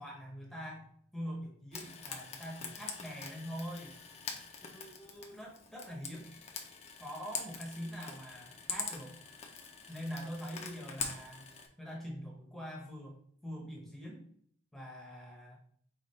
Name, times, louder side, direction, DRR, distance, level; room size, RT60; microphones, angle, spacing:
voice 1, 0.0-3.9 4.6-6.3 7.0-9.2 9.9-11.5 11.8-14.2 14.7-15.6, equal, ahead, -2 dB, 0.8 m, -44 dB
Frying (food), 1.7-11.7, left 5 dB, 30° left, 0.6 m, -44 dB
5.0 x 2.4 x 4.1 m, 0.63 s
head